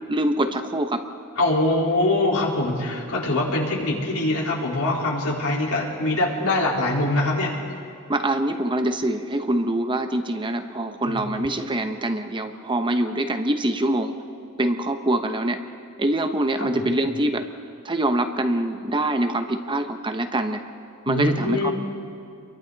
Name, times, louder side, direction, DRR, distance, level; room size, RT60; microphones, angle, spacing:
voice 1, 0.1-1.0 8.1-14.2 14.6-15.6 16.0-17.5 17.8-20.6 21.1-21.7, right 1 dB, 20° right, 7 dB, 0.9 m, -24 dB
voice 2, 1.4-7.5 11.1-11.6 16.6-16.9 21.1-21.7, left 2 dB, 80° left, -3 dB, 4.2 m, -23 dB
30.0 x 23.0 x 4.0 m, 2.4 s
head